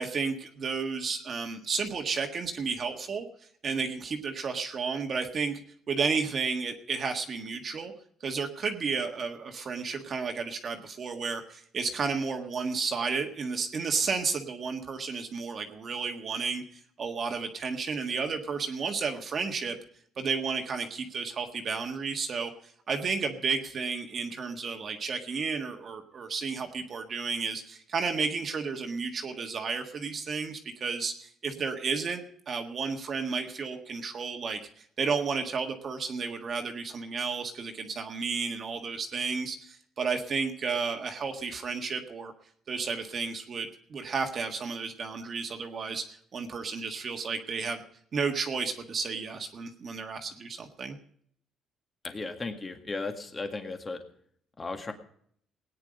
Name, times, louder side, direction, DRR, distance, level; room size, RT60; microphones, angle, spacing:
voice 1, 0.0-3.3 3.6-5.6 5.9-7.9 8.2-19.8 20.2-42.3 42.7-47.8 48.1-51.0, right 5 dB, 40° right, 4 dB, 1.6 m, -32 dB
voice 2, 52.0-54.0 54.6-54.9, left 3 dB, 20° left, 6 dB, 2.0 m, -35 dB
18.5 x 9.6 x 5.1 m, 0.63 s
cardioid pair, 140°, 0 cm